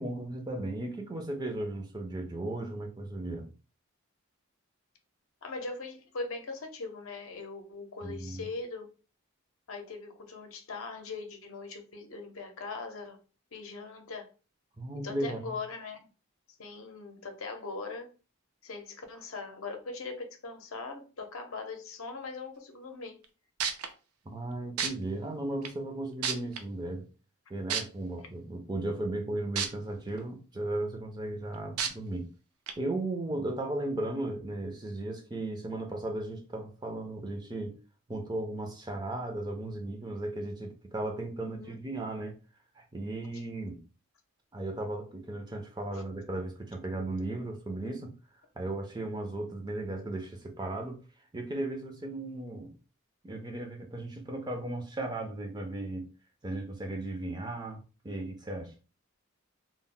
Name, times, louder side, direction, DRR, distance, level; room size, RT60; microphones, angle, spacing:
voice 1, 0.0-3.5 8.0-8.4 14.8-15.6 24.3-27.1 27.5-32.3 32.8-37.8 38.1-42.4 42.8-43.8 44.5-48.1 48.6-51.0 51.3-52.7 53.2-56.1 56.4-58.7, right 2 dB, 20° right, 0.4 m, -36 dB
voice 2, 5.4-8.9 9.7-13.2 13.5-14.3 15.0-16.1 16.6-18.1 18.6-23.2 41.4-41.8 45.9-46.0, left 3 dB, 70° left, 0.6 m, -40 dB
sound 1, 23.2-23.3 23.6-23.9 24.8-24.9 25.6-25.7 26.2-26.6 27.7-27.8 29.6-29.7 30.2-30.3 31.8-31.9 32.7-32.8, right 7 dB, 90° right, 0.5 m, -29 dB
2.1 x 2.0 x 3.7 m
head